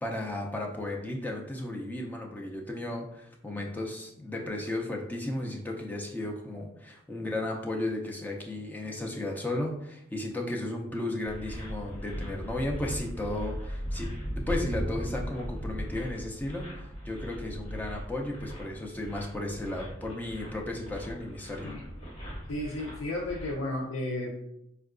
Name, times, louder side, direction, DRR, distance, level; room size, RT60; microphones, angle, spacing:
voice 1, 0.0-21.7, left 1 dB, 10° left, 0 dB, 0.4 m, -34 dB
sound 1, 11.2-23.5, equal, 30° left, 1.3 m, -38 dB
voice 2, 22.5-24.4, left 1 dB, 75° left, -3 dB, 0.5 m, -33 dB
4.4 x 2.2 x 2.4 m, 0.79 s
head